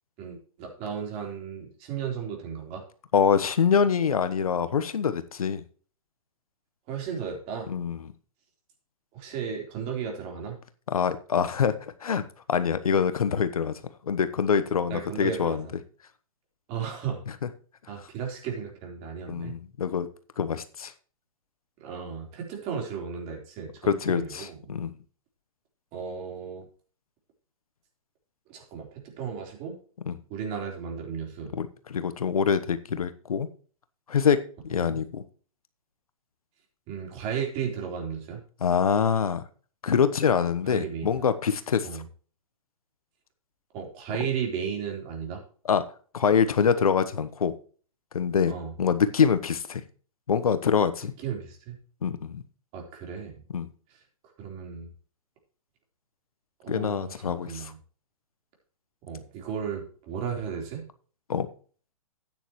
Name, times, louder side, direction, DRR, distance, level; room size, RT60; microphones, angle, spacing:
voice 1, 0.2-2.8 6.9-7.7 9.1-10.6 14.9-15.6 16.7-17.2 17.9-19.5 21.8-24.6 25.9-26.7 28.5-29.8 30.3-31.5 34.7-35.0 36.9-38.4 40.7-41.3 41.8-42.0 43.7-45.4 48.5-48.7 51.2-51.8 52.7-53.4 54.4-54.9 56.6-57.8 59.1-60.8, right 7 dB, 35° right, 1 dB, 3.9 m, -34 dB
voice 2, 3.1-5.6 7.7-8.0 10.9-11.7 12.0-12.2 12.5-13.8 14.1-15.6 19.3-20.1 20.4-20.9 23.9-24.9 30.1-30.2 31.5-33.5 34.1-34.4 34.6-35.2 38.6-39.4 39.8-42.0 45.7-45.8 46.1-47.5 48.1-49.8 50.3-51.1 52.0-52.4 53.5-53.7 56.7-57.7 61.3-61.5, left 6 dB, 80° left, 11 dB, 1.1 m, -25 dB
12.5 x 9.2 x 3.1 m, 0.41 s
hypercardioid pair, 125°, 19 cm